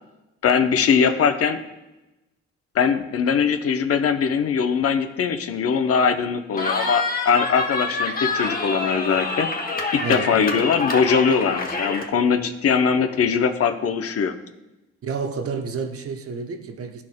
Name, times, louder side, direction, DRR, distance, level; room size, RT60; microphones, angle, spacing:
voice 1, 0.4-1.6 2.7-9.5 9.9-14.3, left 6 dB, 50° left, 8 dB, 0.7 m, -21 dB
Cheering, 6.6-12.1, left 3 dB, 30° left, 1.1 m, -27 dB
voice 2, 10.0-10.6 15.0-17.0, right 5 dB, 50° right, 6 dB, 0.8 m, -30 dB
12.5 x 4.2 x 2.2 m, 1.0 s
cardioid pair, 90°, 30 cm